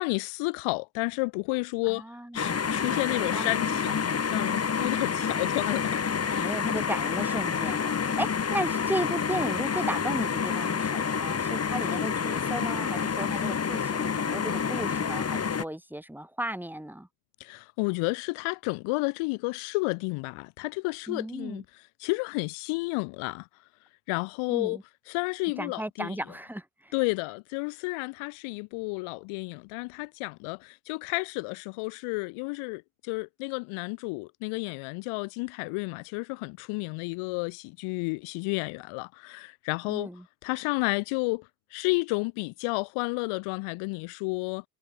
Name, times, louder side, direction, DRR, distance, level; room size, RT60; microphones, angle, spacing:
voice 1, 0.0-2.0 2.3-6.0 6.3-6.5 17.4-21.6 22.0-23.5 24.1-24.8 25.1-26.2 26.9-40.1 40.4-44.6, left 28 dB, 80° left, 2.8 m, -31 dB
voice 2, 1.9-2.8 3.2-3.5 6.3-17.1 21.1-21.6 24.5-24.8 25.6-26.9 39.9-40.2, right 1 dB, 5° right, 6.4 m, -35 dB
sound 1, 2.4-15.7, left 6 dB, 30° left, 2.6 m, -28 dB
supercardioid pair, 85°, 49 cm